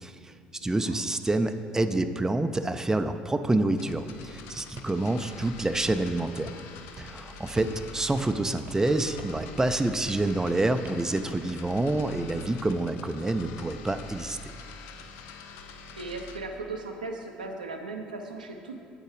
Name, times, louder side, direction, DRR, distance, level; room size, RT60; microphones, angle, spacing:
voice 1, 0.0-0.3 0.6-6.6 7.0-14.4, right 2 dB, 10° right, 9 dB, 0.4 m, -27 dB
voice 2, 0.6-1.0 7.3-7.7 16.0-18.8, right 3 dB, 90° right, 3 dB, 0.5 m, -38 dB
sound 1, 3.7-16.4, left 4 dB, 65° left, 0.5 m, -45 dB
sound 2, 4.8-5.0 5.3-6.1 6.4-6.7 7.0-7.2 7.6-7.8 8.1-8.2 8.7-8.9 9.2-9.5 9.7-10.0 10.3-10.5 10.8-11.1 11.4-11.6 12.0-12.9, right 3 dB, 40° right, 0.8 m, -46 dB
8.0 x 6.5 x 5.0 m, 2.4 s
figure-of-eight pair, 55°, 4 cm